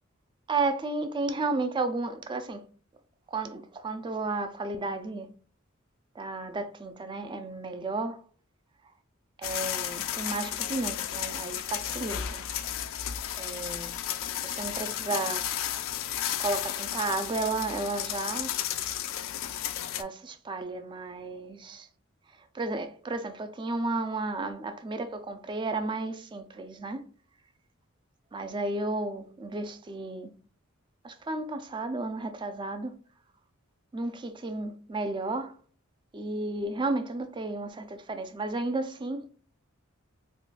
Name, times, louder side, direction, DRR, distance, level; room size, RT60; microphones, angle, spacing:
voice 1, 0.5-2.6 3.3-5.3 6.2-8.2 9.4-12.6 13.4-13.9 14.4-15.5 16.4-18.5 19.9-21.9 22.5-27.0 28.3-30.3 31.0-32.9 33.9-35.5 36.1-39.3, right 3 dB, 25° right, 0.4 m, -33 dB
sound 1, 9.4-20.0, left 11 dB, 70° left, 0.3 m, -33 dB
3.6 x 2.3 x 2.4 m
head